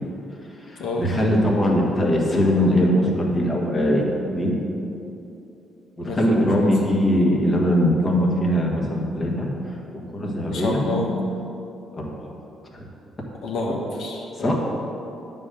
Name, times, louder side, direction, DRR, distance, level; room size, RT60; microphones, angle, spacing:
voice 1, 0.6-4.7 6.0-11.1 12.0-12.3 12.7-12.9 14.3-14.5, equal, 30° left, -1 dB, 1.6 m, -21 dB
voice 2, 6.0-6.5 10.5-11.1 13.4-14.5, left 2 dB, 80° left, -1 dB, 1.2 m, -28 dB
9.3 x 3.8 x 6.8 m, 2.8 s
cardioid pair, 90°, 0 cm